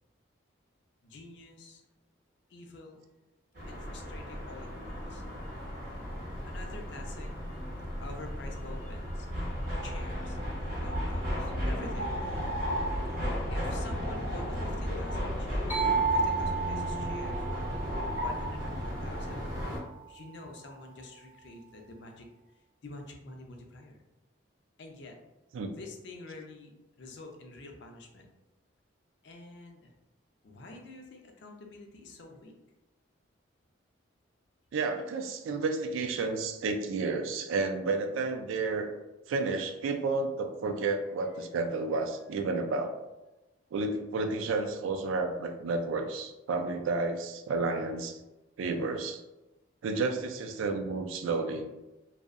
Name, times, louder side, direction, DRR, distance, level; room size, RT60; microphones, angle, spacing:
voice 1, 1.0-1.8 2.5-3.1 3.7-5.2 6.5-7.3 8.0-9.3 9.8-10.4 10.8-12.2 13.5-17.9 18.2-19.5 20.1-22.3 22.8-24.0 24.8-25.2 25.8-28.3 29.2-29.9 30.4-32.5 41.2-41.5, left 2 dB, 60° left, 2 dB, 0.4 m, -48 dB
sound 1, 3.5-19.8, equal, 45° right, 0.7 m, -34 dB
sound 2, 15.7-19.4, right 8 dB, 10° right, 0.4 m, -33 dB
voice 2, 34.7-38.9 39.3-42.9 43.7-48.2 48.6-49.2 49.8-51.7, right 3 dB, 80° right, 6 dB, 0.3 m, -31 dB
2.6 x 2.0 x 2.4 m, 1.0 s
head